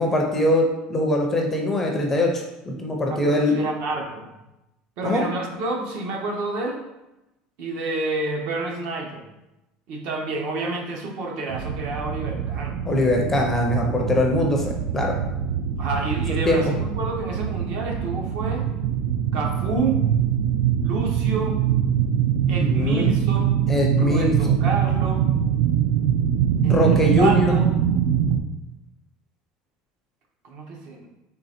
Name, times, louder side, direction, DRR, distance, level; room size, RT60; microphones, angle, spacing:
voice 1, 0.0-3.6 5.0-5.2 12.8-15.2 16.4-16.7 22.6-23.1 23.7-24.6 26.6-27.6, left 1 dB, 10° left, 0 dB, 0.5 m, -22 dB
voice 2, 3.1-4.3 5.0-6.8 7.6-9.2 9.9-12.8 15.8-18.7 19.3-20.0 20.8-21.6 22.5-23.6 23.9-25.3 26.6-27.7 30.4-31.1, right 3 dB, 55° right, 1 dB, 0.8 m, -29 dB
sound 1, 11.5-28.4, right 9 dB, 80° right, 0.3 m, -23 dB
3.8 x 3.2 x 4.2 m, 0.96 s
cardioid pair, 180°, 3 cm